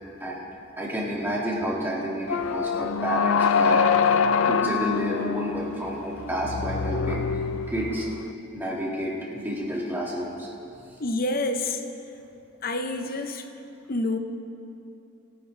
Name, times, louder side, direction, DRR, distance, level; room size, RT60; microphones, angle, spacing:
voice 1, 0.8-3.9 4.5-8.1 8.5-10.5, equal, 10° right, -5 dB, 1.9 m, -30 dB
sound 1, 2.3-8.3, left 6 dB, 85° left, 0.4 m, -25 dB
voice 2, 11.0-11.8 12.6-13.4 13.9-14.2, left 2 dB, 45° left, 7 dB, 0.7 m, -27 dB
21.5 x 9.9 x 3.3 m, 2.8 s
head